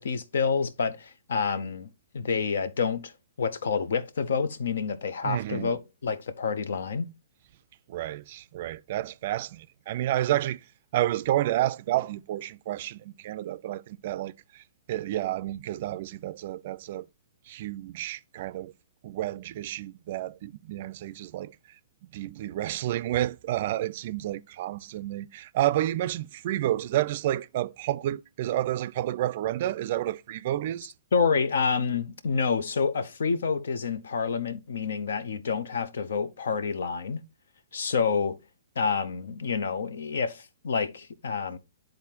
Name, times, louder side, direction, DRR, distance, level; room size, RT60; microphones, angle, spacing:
voice 1, 0.0-1.9 2.1-3.1 3.4-7.1 31.1-37.2 37.7-38.4 38.8-41.6, left 5 dB, 75° left, 0.7 m, -28 dB
voice 2, 5.2-5.8 7.9-10.6 10.9-17.1 17.5-18.7 19.0-21.5 22.1-30.9, right 13 dB, 50° right, 0.3 m, -30 dB
10.0 x 3.9 x 2.8 m
hypercardioid pair, 135°, 0 cm